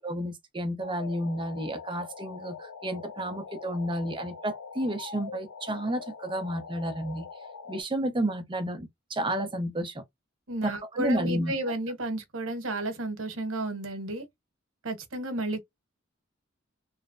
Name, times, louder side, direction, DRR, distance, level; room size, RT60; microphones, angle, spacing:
voice 1, 0.0-7.3 7.7-10.0 10.6-11.5, right 1 dB, 25° right, 0.7 m, -31 dB
sound 1, 0.8-7.8, left 5 dB, 85° left, 0.6 m, -43 dB
voice 2, 10.5-14.3 14.8-15.6, right 1 dB, 90° right, 1.0 m, -32 dB
3.2 x 2.0 x 2.4 m
head